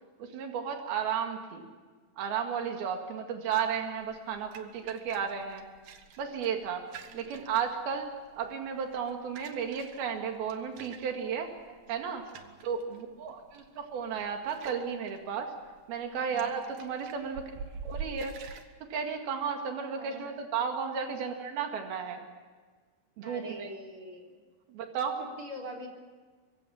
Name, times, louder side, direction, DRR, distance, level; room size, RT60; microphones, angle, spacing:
voice 1, 0.2-1.7 2.2-5.6 6.2-6.9 7.1-8.1 8.4-11.5 11.9-12.3 12.6-15.5 15.9-17.5 17.8-18.3 18.9-22.3 23.2-23.7 24.7-25.2, right 7 dB, 90° right, 4 dB, 3.9 m, -33 dB
sound 1, 4.0-18.7, right 5 dB, 65° right, 2.9 m, -48 dB
voice 2, 11.7-12.5 16.1-16.5 19.9-20.3 23.2-24.3 25.2-25.9, right 1 dB, 35° right, 0 dB, 4.6 m, -44 dB
24.5 x 23.5 x 7.1 m, 1.4 s
omnidirectional pair, 4.2 m